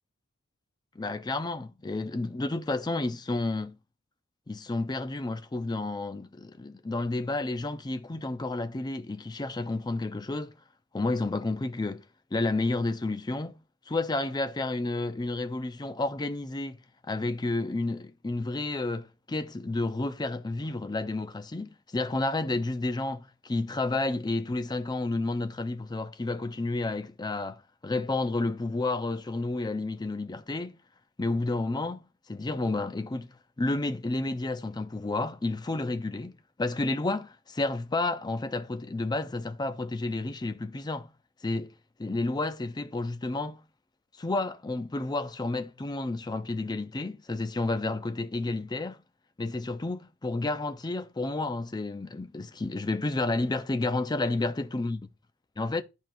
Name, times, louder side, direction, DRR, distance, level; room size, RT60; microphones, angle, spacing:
voice 1, 1.0-3.8 4.5-10.5 10.9-12.0 12.3-13.6 13.9-16.8 17.1-30.7 31.2-32.0 32.3-41.1 41.4-41.7 42.0-43.6 44.2-49.0 49.4-55.0 55.6-55.8, left 2 dB, 20° left, 0.4 m, -31 dB
11.0 x 4.5 x 2.6 m
head